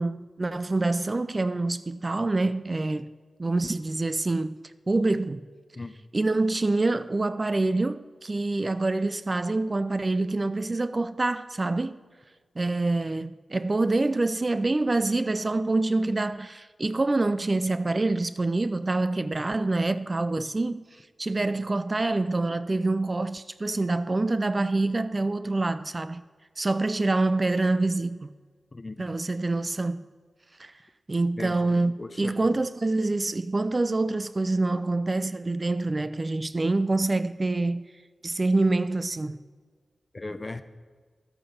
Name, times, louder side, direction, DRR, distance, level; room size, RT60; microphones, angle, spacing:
voice 1, 0.0-3.1 3.4-4.6 4.9-5.4 6.1-12.0 12.6-20.8 21.2-26.2 26.6-28.3 29.0-30.0 30.6-30.7 31.1-37.9 38.2-39.4, right 2 dB, 30° right, 0.4 m, -26 dB
voice 2, 28.7-29.1 31.4-32.6 40.1-40.6, left 2 dB, 30° left, 0.7 m, -38 dB
12.0 x 8.5 x 5.5 m
wide cardioid pair, 110°, 0 cm